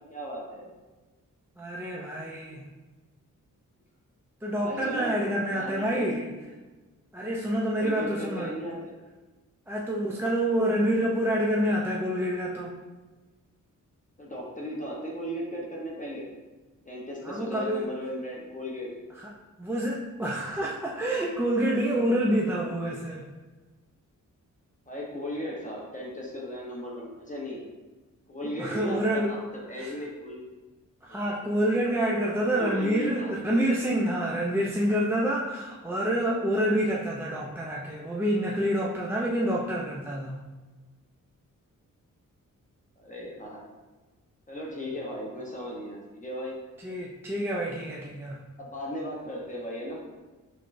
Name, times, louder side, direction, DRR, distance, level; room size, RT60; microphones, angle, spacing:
voice 1, 0.1-0.7 4.6-5.2 5.5-6.1 7.7-8.9 14.2-16.3 16.9-18.9 24.9-27.6 28.3-30.4 31.1-31.3 32.5-33.3 43.0-43.6 44.5-46.6 48.6-50.0, equal, 25° left, -4 dB, 0.8 m, -36 dB
voice 2, 1.6-2.6 4.4-6.3 7.1-8.6 9.7-12.7 17.2-17.9 19.2-19.3 19.6-23.2 28.4-29.4 29.8-29.9 31.0-40.4 46.8-48.4, right 1 dB, 10° right, -4 dB, 0.4 m, -27 dB
5.7 x 3.2 x 2.5 m, 1.2 s
wide cardioid pair, 140°, 32 cm